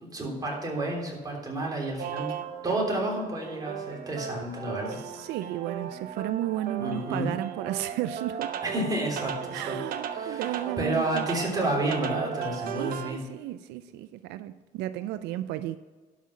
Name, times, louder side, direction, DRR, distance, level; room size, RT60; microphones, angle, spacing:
voice 1, 0.0-2.3 2.6-5.0 6.8-7.3 8.6-9.8 10.1-13.2, right 1 dB, 20° right, 3.3 m, -30 dB
sound 1, 2.0-13.1, right 8 dB, 60° right, 0.9 m, -36 dB
voice 2, 4.9-8.6 9.5-11.3 12.7-15.8, right 13 dB, 90° right, 0.4 m, -33 dB
12.0 x 5.7 x 6.0 m
cardioid pair, 110°, 17 cm